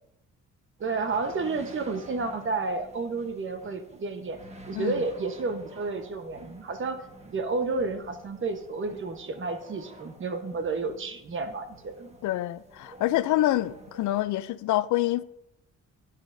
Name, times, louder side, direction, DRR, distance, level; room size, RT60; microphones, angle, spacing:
sound 1, 0.8-14.2, right 1 dB, 20° right, 1.3 m, -50 dB
voice 1, 0.8-4.4 4.7-12.2, right 3 dB, 40° right, 1.1 m, -31 dB
voice 2, 12.2-15.2, left 15 dB, 75° left, 0.5 m, -26 dB
11.0 x 9.5 x 2.7 m
cardioid pair, 90°, 30 cm